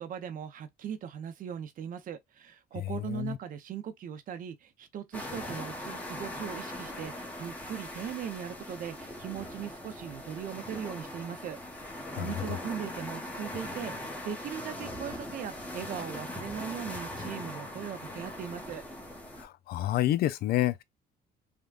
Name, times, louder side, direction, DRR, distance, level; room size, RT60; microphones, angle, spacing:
voice 1, 0.0-18.8, right 8 dB, 55° right, 0.7 m, -39 dB
voice 2, 2.8-3.4 12.2-12.6 19.4-20.8, left 14 dB, 65° left, 0.4 m, -29 dB
sound 1, 5.1-19.4, left 1 dB, 10° left, 0.9 m, -40 dB
3.4 x 2.2 x 2.3 m
cardioid pair, 110°, 17 cm